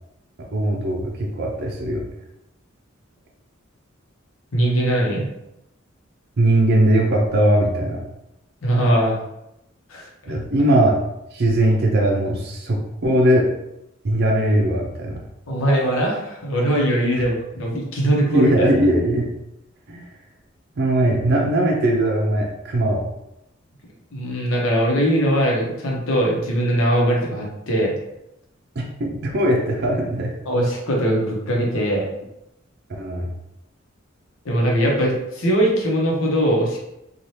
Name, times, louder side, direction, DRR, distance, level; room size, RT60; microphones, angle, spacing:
voice 1, 0.4-2.0 6.4-8.0 10.3-11.0 11.3-13.5 14.0-15.2 17.1-17.2 18.3-19.3 19.9-20.1 20.8-23.0 28.8-30.3 32.9-33.3, right 1 dB, 55° right, -1 dB, 0.5 m, -20 dB
voice 2, 4.5-5.3 8.6-9.2 9.9-10.4 15.5-18.7 24.1-27.9 30.5-32.1 34.4-36.8, right 1 dB, 80° left, -2 dB, 0.8 m, -21 dB
2.7 x 2.3 x 3.2 m, 0.87 s
head